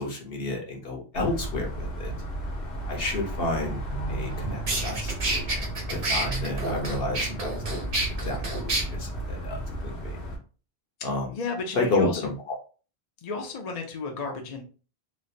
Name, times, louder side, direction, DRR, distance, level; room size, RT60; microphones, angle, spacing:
voice 1, 0.0-2.1 2.9-3.8 4.1-5.6 5.9-7.9 8.2-10.2 11.0-11.3 11.7-12.5, left 2 dB, 65° left, 0 dB, 1.1 m, -31 dB
sound 1, 1.1-10.4, right 1 dB, 85° left, 1.3 m, -34 dB
sound 2, 3.9-9.2, right 3 dB, 35° right, 0.7 m, -37 dB
sound 3, 4.2-4.3 4.7-8.8, right 2 dB, 60° right, 1.1 m, -29 dB
voice 2, 11.3-12.3 13.2-14.6, left 4 dB, 45° left, 1 dB, 0.6 m, -33 dB
3.1 x 2.5 x 2.6 m, 0.36 s
omnidirectional pair, 1.1 m